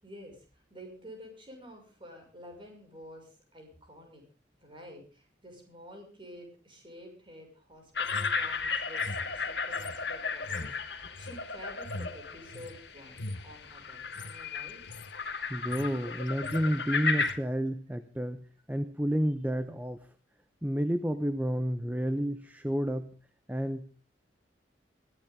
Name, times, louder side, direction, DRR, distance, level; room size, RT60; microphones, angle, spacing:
voice 1, 0.0-4.2 4.6-14.8, equal, 25° right, 2 dB, 6.2 m, -50 dB
sound 1, 7.9-17.3, left 4 dB, 60° left, 2.2 m, -34 dB
sound 2, 8.0-12.8 13.1-13.5 14.0-14.4 14.7-15.1 15.5-16.0 16.3-16.7 17.2-17.4, left 2 dB, 80° left, 1.4 m, -43 dB
voice 2, 15.5-20.0 20.6-23.1 23.5-23.9, equal, 10° right, 10 dB, 0.8 m, -30 dB
22.0 x 14.5 x 3.8 m, 0.36 s
head